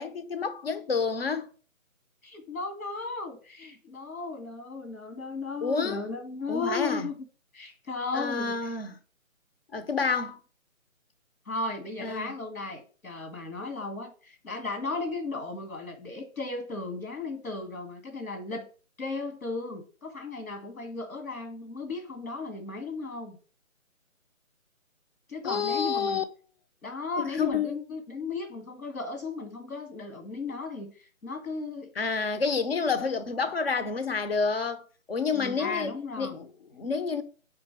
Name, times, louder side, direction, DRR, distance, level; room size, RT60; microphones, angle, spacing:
voice 1, 0.0-1.5 5.6-6.0 6.5-7.1 8.1-9.0 9.7-10.4 12.0-12.3 25.4-26.2 27.1-27.7 32.0-34.8 35.1-35.9 36.2-37.2, left 5 dB, 45° left, 0.8 m, -29 dB
voice 2, 2.2-7.1 7.5-8.5 11.5-18.7 19.0-23.4 25.3-26.2 26.8-30.9 31.2-31.9 35.3-36.4, left 3 dB, 85° left, 2.2 m, -35 dB
5.2 x 4.1 x 5.8 m
hypercardioid pair, 170°, 42 cm